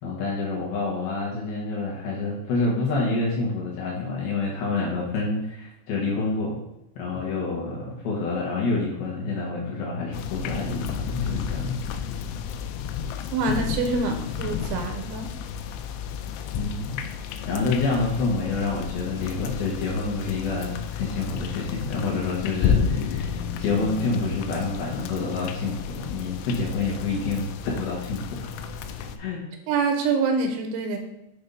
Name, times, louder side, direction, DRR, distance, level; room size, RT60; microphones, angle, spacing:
voice 1, 0.0-6.6 7.0-11.8 16.6-17.0 17.4-28.5 29.2-29.4, left 3 dB, 70° left, -3 dB, 2.7 m, -28 dB
sound 1, 10.1-29.2, left 7 dB, 85° left, 3.0 m, -31 dB
voice 2, 13.3-15.3 29.7-31.0, right 4 dB, 85° right, 5 dB, 3.0 m, -25 dB
8.0 x 3.4 x 5.2 m, 0.86 s
omnidirectional pair, 5.4 m